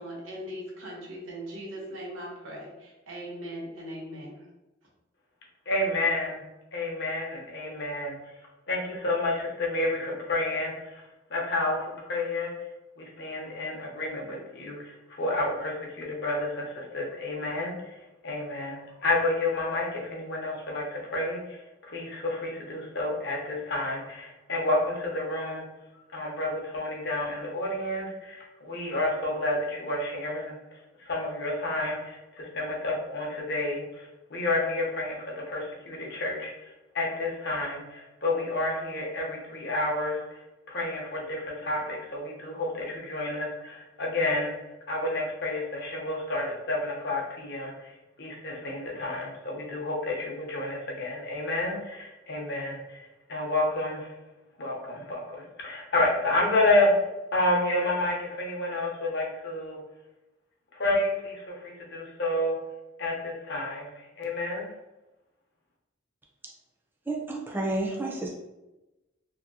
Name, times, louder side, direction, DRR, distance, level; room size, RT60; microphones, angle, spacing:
voice 1, 0.0-4.5, equal, 90° right, -3 dB, 1.0 m, -39 dB
voice 2, 5.7-6.4 6.7-8.1 8.7-12.5 13.0-25.6 26.1-30.6 31.0-44.6 44.9-54.2 54.6-56.9 57.3-59.8 60.7-62.6 63.0-64.7, left 2 dB, 55° left, -1 dB, 0.7 m, -30 dB
voice 3, 67.1-68.3, right 2 dB, 10° right, -1 dB, 0.4 m, -30 dB
2.8 x 2.6 x 2.6 m, 1.0 s
head